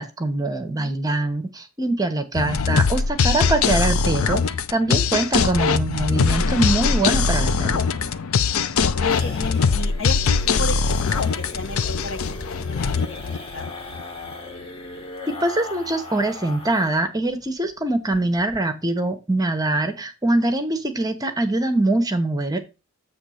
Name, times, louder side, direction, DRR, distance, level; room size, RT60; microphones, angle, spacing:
voice 1, 0.0-4.4 4.7-7.8 15.4-22.6, right 2 dB, 20° right, 0.9 m, -23 dB
sound 1, 2.3-14.0, left 5 dB, 85° left, 0.5 m, -21 dB
sound 2, 7.9-17.0 17.3-17.4 17.7-17.8 18.1-18.6, left 2 dB, 25° left, 1.3 m, -38 dB
voice 2, 8.9-13.7, left 2 dB, 65° left, 0.9 m, -34 dB
8.0 x 3.1 x 6.3 m
head